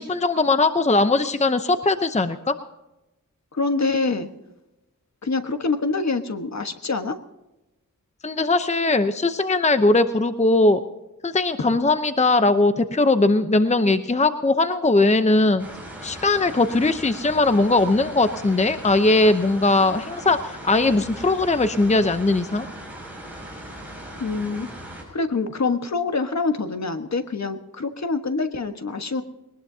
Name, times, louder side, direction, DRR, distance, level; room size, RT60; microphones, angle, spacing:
voice 1, 0.0-2.5 8.2-10.8 11.2-15.6 16.0-20.4 20.6-22.6, left 2 dB, 20° left, 9 dB, 0.8 m, -19 dB
voice 2, 3.5-4.3 5.2-7.2 24.2-24.7 25.1-29.2, left 3 dB, 55° left, 7 dB, 1.4 m, -25 dB
sound 1, 15.6-25.0, right 1 dB, 5° right, 6.4 m, -39 dB
21.5 x 19.5 x 2.8 m, 0.96 s
wide cardioid pair, 100°, 33 cm